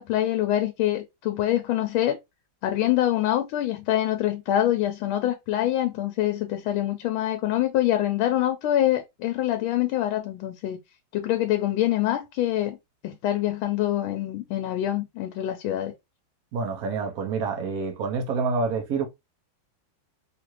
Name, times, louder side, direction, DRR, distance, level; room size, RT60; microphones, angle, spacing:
voice 1, 0.0-2.2 2.6-10.8 11.1-12.8 13.0-15.9, left 13 dB, 90° left, 1.4 m, -25 dB
voice 2, 16.5-19.1, right 4 dB, 65° right, 0.9 m, -27 dB
3.5 x 2.5 x 3.0 m
omnidirectional pair, 2.2 m